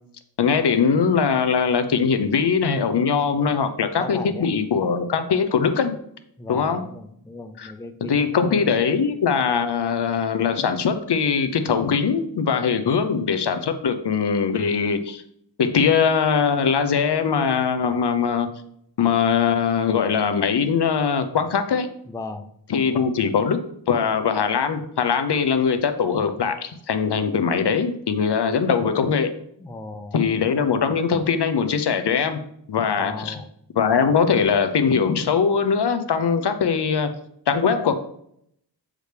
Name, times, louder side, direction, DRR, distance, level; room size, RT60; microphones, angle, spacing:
voice 1, 0.4-6.0 6.5-6.8 7.6-7.7 8.1-15.2 15.6-18.5 19.0-21.9 22.7-29.3 30.1-32.4 32.7-33.4 33.8-37.1 37.5-37.9, left 6 dB, 65° left, 9 dB, 0.7 m, -21 dB
voice 2, 4.0-4.5 6.4-8.7 22.1-22.5 22.9-23.0 29.6-30.2 33.0-33.5, left 3 dB, 10° left, 7 dB, 0.4 m, -37 dB
7.8 x 5.0 x 3.3 m, 0.69 s
wide cardioid pair, 110°, 44 cm